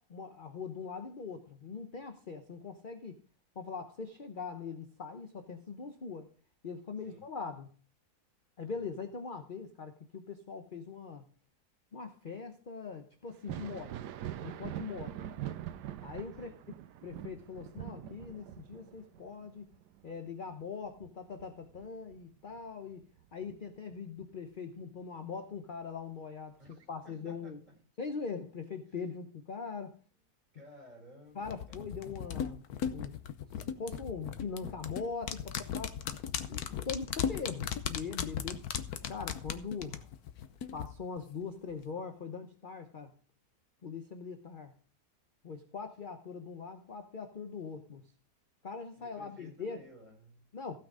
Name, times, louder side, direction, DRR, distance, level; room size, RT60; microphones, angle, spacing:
voice 1, 0.0-3.2 3.5-6.3 6.6-7.7 8.6-11.3 11.9-14.0 14.4-15.2 16.0-16.5 17.0-19.7 20.0-23.0 23.3-26.6 26.9-27.6 28.0-30.0 31.3-33.2 33.6-36.0 36.5-38.6 39.1-40.1 40.7-43.1 43.8-44.7 45.4-48.1 48.6-49.8 50.5-50.8, left 5 dB, 40° left, 7 dB, 0.9 m, -41 dB
Thunder, 13.3-22.6 23.0-24.2 25.8-25.9 26.7-26.8, right 11 dB, 90° right, 1.3 m, -44 dB
voice 2, 26.6-27.7 30.5-31.8 48.9-50.4, equal, 25° right, -2 dB, 5.9 m, -56 dB
sound 1, 31.5-40.9 41.2-41.3, left 8 dB, 70° left, 1.3 m, -37 dB
15.5 x 6.1 x 4.9 m, 0.41 s
omnidirectional pair, 1.7 m